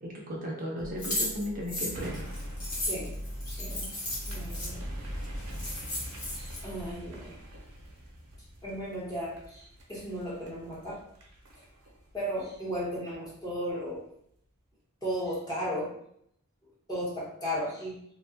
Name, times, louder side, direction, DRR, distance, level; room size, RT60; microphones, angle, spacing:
voice 1, 0.0-2.2, equal, 40° right, -3 dB, 0.5 m, -35 dB
sound 1, 0.8-6.9, equal, 65° left, 0.7 m, -41 dB
sound 2, 1.0-4.7 5.2-5.3 5.5-6.6, left 1 dB, 90° left, 1.2 m, -35 dB
sound 3, 1.9-13.4 13.8-13.9, right 1 dB, 90° right, 0.7 m, -46 dB
voice 2, 2.9-3.2 3.5-4.0 4.3-4.9 6.3-7.4 8.6-11.0 12.1-14.1 15.0-16.0 16.9-18.0, equal, 15° left, -6 dB, 0.8 m, -35 dB
2.8 x 2.1 x 2.7 m, 0.71 s
head